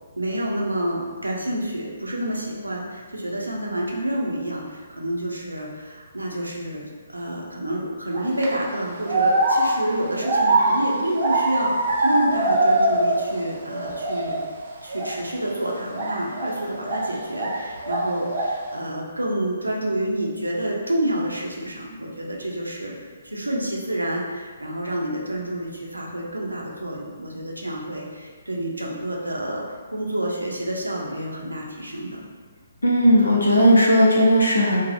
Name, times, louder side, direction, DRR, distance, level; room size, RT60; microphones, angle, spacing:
voice 1, 0.2-14.4 14.8-32.2, right 1 dB, 90° right, -2 dB, 0.5 m, -28 dB
sound 1, 8.1-8.5 9.1-13.4 13.7-14.5 14.9-15.1 15.9-17.6 17.8-18.6, right 2 dB, 50° right, 0.6 m, -22 dB
voice 2, 32.8-34.8, equal, 80° left, -4 dB, 0.5 m, -16 dB
3.2 x 2.1 x 2.5 m, 1.5 s
figure-of-eight pair, 135°, 0 cm